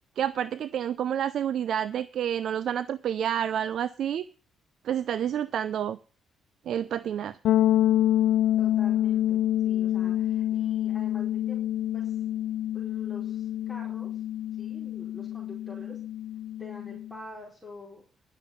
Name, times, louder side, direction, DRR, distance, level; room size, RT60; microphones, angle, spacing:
voice 1, 0.2-4.2 4.8-6.0 6.7-7.4, right 9 dB, 70° right, 16 dB, 0.5 m, -29 dB
sound 1, 7.4-17.2, left 12 dB, 75° left, 0.5 m, -27 dB
voice 2, 8.6-11.6 11.9-12.2 12.7-14.2 14.6-16.0 16.6-18.0, left 2 dB, 10° left, -5 dB, 4.8 m, -46 dB
11.0 x 6.7 x 9.0 m, 0.38 s
cardioid pair, 90°, 0 cm